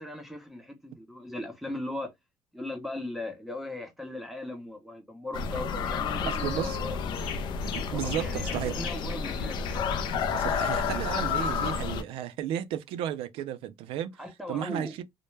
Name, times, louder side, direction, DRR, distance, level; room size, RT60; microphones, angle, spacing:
voice 1, 0.0-2.1 2.5-7.0 7.8-9.9 14.2-15.0, left 1 dB, ahead, 0.6 m, -38 dB
sound 1, 5.3-12.0, left 5 dB, 55° left, 0.3 m, -30 dB
voice 2, 6.3-6.8 7.7-8.7 10.3-14.1 14.5-15.0, right 10 dB, 80° right, 0.4 m, -33 dB
sound 2, 6.4-6.7 7.1-11.9, left 8 dB, 90° left, 0.8 m, -43 dB
2.1 x 2.1 x 3.1 m
cardioid pair, 135°, 9 cm